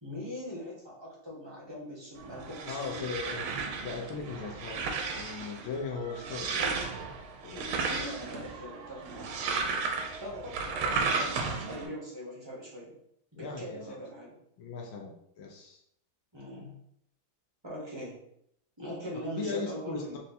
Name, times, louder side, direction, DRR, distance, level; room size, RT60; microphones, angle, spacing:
voice 1, 0.0-3.5 7.8-9.5 10.2-12.9 13.3-14.4 16.3-16.7 17.6-18.2 18.8-20.2, equal, 20° right, -5 dB, 0.7 m, -41 dB
sound 1, 2.2-11.9, right 4 dB, 85° right, 1.5 m, -34 dB
voice 2, 2.7-3.5 3.8-6.8 7.4-7.6 13.4-14.0 14.6-15.8 19.4-20.2, left 4 dB, 80° left, 1 dB, 1.5 m, -38 dB
4.4 x 3.3 x 2.7 m, 0.72 s
omnidirectional pair, 2.3 m